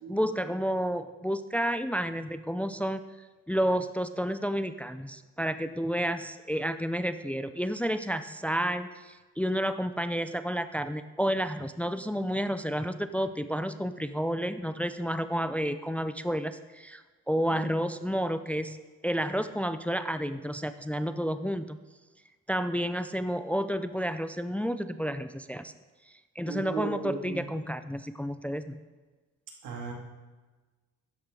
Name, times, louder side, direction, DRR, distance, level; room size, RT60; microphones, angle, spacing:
voice 1, 0.1-3.0 3.5-18.8 19.0-21.8 22.5-25.7 26.4-28.8, equal, 5° left, 11 dB, 0.4 m, -30 dB
voice 2, 26.5-27.4 29.6-29.9, right 4 dB, 85° right, 1 dB, 2.3 m, -36 dB
12.0 x 10.5 x 3.8 m, 1.3 s
cardioid pair, 90°, 30 cm